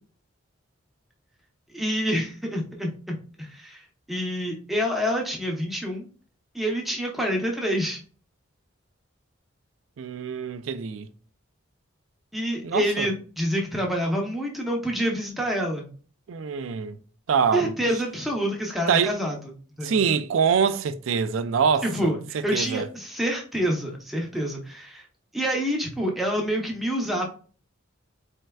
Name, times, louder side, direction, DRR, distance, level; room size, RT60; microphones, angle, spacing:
voice 1, 1.7-6.1 6.5-8.0 12.3-15.9 17.5-19.4 19.8-20.0 21.8-25.1 25.3-27.3, equal, ahead, 0.8 m, -27 dB
voice 2, 10.0-11.1 12.6-13.1 16.3-17.0 17.3-17.7 18.9-19.1 19.8-22.9, right 6 dB, 75° right, 0.4 m, -25 dB
4.3 x 3.3 x 2.3 m
head